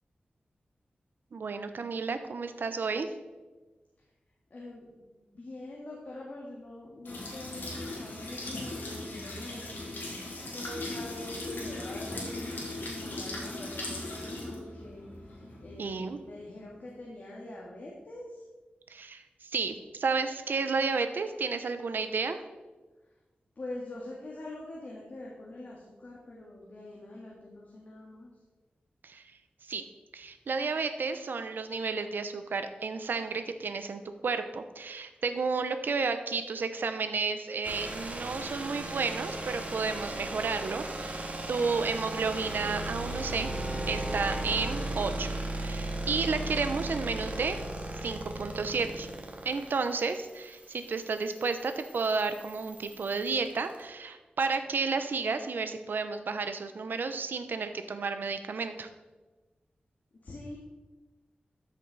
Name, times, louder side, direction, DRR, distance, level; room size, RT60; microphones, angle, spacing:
voice 1, 1.3-3.1 15.8-16.2 18.9-22.4 29.0-29.2 29.7-29.8 30.1-43.5 43.9-47.6 48.0-49.1 49.4-58.9, right 4 dB, 75° right, 9 dB, 0.8 m, -32 dB
voice 2, 4.5-10.2 10.5-18.4 23.6-28.3 60.2-60.6, left 1 dB, 50° left, -3 dB, 1.9 m, -44 dB
sound 1, 7.0-16.7, left 2 dB, 75° left, 2.9 m, -39 dB
sound 2, 37.6-53.8, right 2 dB, 40° right, 1.7 m, -37 dB
Bowed string instrument, 41.5-45.1, right 1 dB, 5° right, 0.8 m, -42 dB
13.5 x 6.3 x 4.1 m, 1.2 s
wide cardioid pair, 115°, 3 cm